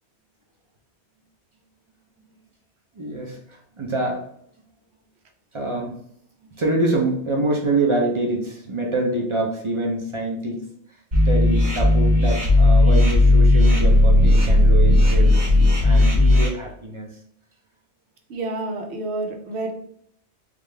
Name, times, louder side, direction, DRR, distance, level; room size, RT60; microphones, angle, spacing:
voice 1, 2.9-4.2 5.5-5.9 6.4-10.6 11.3-15.5 15.8-17.1, right 2 dB, 35° right, 0 dB, 0.5 m, -25 dB
sound 1, 11.1-16.5, left 1 dB, 50° right, 1.6 m, -15 dB
voice 2, 18.3-19.7, right 2 dB, 70° right, 3 dB, 0.9 m, -29 dB
3.6 x 2.4 x 3.2 m, 0.68 s
omnidirectional pair, 1.2 m